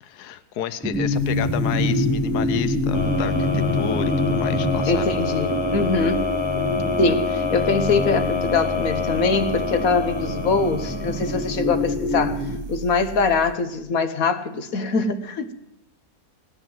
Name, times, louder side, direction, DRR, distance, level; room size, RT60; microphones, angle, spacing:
voice 1, 0.0-5.0, left 10 dB, 80° left, 1.3 m, -31 dB
sound 1, 0.8-12.6, left 1 dB, 5° right, 1.0 m, -26 dB
sound 2, 0.9-13.6, right 4 dB, 30° right, 0.7 m, -38 dB
sound 3, 2.9-11.9, left 4 dB, 25° left, 0.7 m, -27 dB
voice 2, 4.9-6.4 7.0-15.5, left 4 dB, 65° left, 1.5 m, -23 dB
18.0 x 10.5 x 7.5 m
omnidirectional pair, 1.7 m